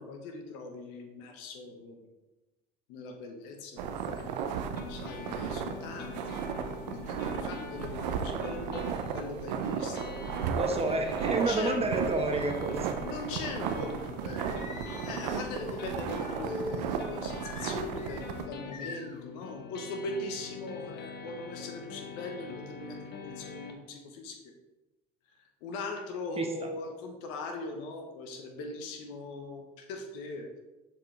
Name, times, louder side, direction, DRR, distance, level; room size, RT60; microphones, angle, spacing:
voice 1, 0.0-2.1 2.9-4.3 4.9-10.6 11.3-11.8 13.0-14.6 15.0-24.5 25.4-30.5, left 3 dB, 75° left, 3 dB, 1.1 m, -40 dB
sound 1, 3.8-18.5, right 7 dB, 85° right, 0.5 m, -35 dB
sound 2, 4.2-23.7, left 5 dB, 55° left, 0.9 m, -44 dB
voice 2, 10.6-13.0 26.4-26.7, right 2 dB, 30° right, 3 dB, 1.2 m, -30 dB
Singing, 14.2-16.4 17.4-18.2 18.7-19.2, left 3 dB, 35° left, 1.1 m, -46 dB
7.1 x 4.7 x 3.3 m, 1.1 s
hypercardioid pair, 70°, 21 cm